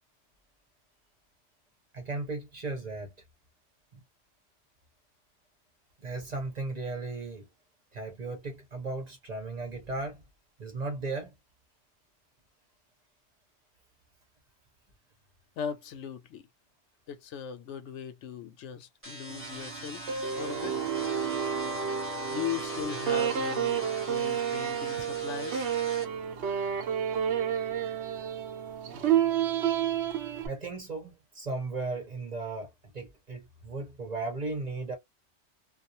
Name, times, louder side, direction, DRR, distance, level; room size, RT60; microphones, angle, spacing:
voice 1, 1.9-3.1 3.9-4.0 6.0-7.5 7.9-10.2 10.6-11.3 30.4-35.0, right 3 dB, 40° right, 0.8 m, -36 dB
voice 2, 15.6-16.5 17.1-20.0 20.4-20.8 22.3-25.7, left 8 dB, 80° left, 0.9 m, -38 dB
sound 1, 19.0-26.0, equal, 15° right, 0.7 m, -43 dB
sound 2, 19.3-30.5, right 8 dB, 70° right, 0.8 m, -30 dB
2.4 x 2.0 x 2.7 m
omnidirectional pair, 1.2 m